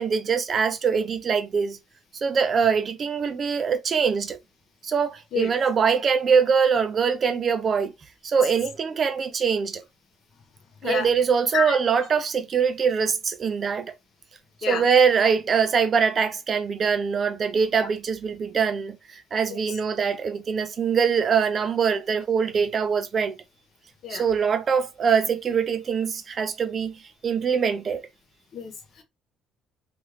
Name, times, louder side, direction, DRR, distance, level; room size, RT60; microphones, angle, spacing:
voice 1, 0.0-1.8 2.1-4.4 4.8-7.9 8.2-9.8 10.8-13.9 14.7-23.4 24.1-28.0, right 6 dB, 30° right, 0.4 m, -23 dB
voice 2, 28.5-29.0, left 5 dB, 50° left, 0.8 m, -29 dB
3.1 x 2.4 x 3.1 m
cardioid pair, 160°, 0 cm